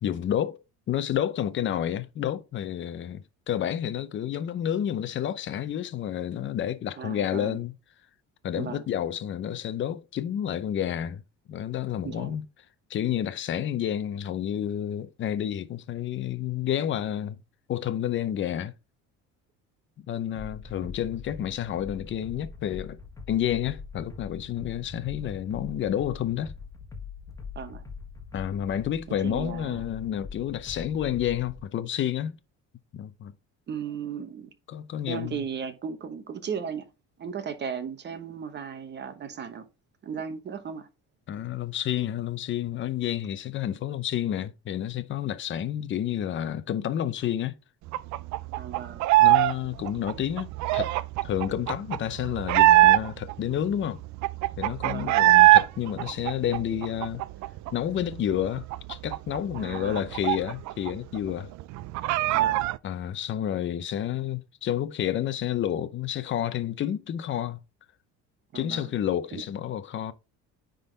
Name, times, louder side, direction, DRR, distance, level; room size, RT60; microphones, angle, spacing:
voice 1, 0.0-0.6 0.9-7.7 8.4-11.2 11.5-12.4 12.9-17.4 17.7-18.7 20.0-23.0 23.3-26.5 28.3-32.4 32.9-33.3 34.7-35.4 41.3-47.6 49.2-50.5 50.7-50.9 51.2-54.0 54.6-57.2 57.7-61.5 62.8-67.6 68.5-70.1, left 10 dB, 35° left, 0.7 m, -30 dB
voice 2, 7.0-7.6 8.6-8.8 12.0-12.3 27.5-27.8 29.2-29.8 33.7-34.5 35.1-36.9 37.2-39.7 40.0-40.9 48.6-49.0 54.8-55.1 59.6-60.0 62.3-62.6 68.5-68.9 69.3-69.4, right 7 dB, 30° right, 1.0 m, -36 dB
sound 1, 20.3-31.6, left 4 dB, 10° left, 1.2 m, -43 dB
sound 2, 47.9-49.5 49.8-53.3 53.7-53.8 54.0-55.7 56.0-57.7 58.0-58.1 58.4-60.9 61.2-61.3 61.6-62.8, right 17 dB, 60° right, 0.5 m, -21 dB
9.6 x 3.9 x 3.9 m
cardioid pair, 155°, 33 cm